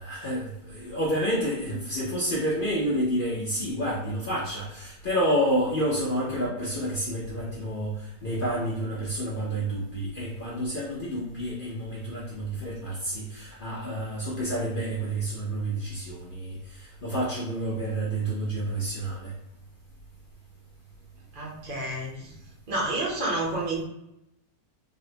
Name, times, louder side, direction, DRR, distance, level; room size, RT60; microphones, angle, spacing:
voice 1, 0.0-19.3, right 1 dB, 75° left, -6 dB, 0.4 m, -29 dB
voice 2, 21.3-22.3 22.7-23.8, right 2 dB, 50° right, -4 dB, 0.6 m, -29 dB
3.9 x 2.1 x 2.7 m, 0.84 s
omnidirectional pair, 1.9 m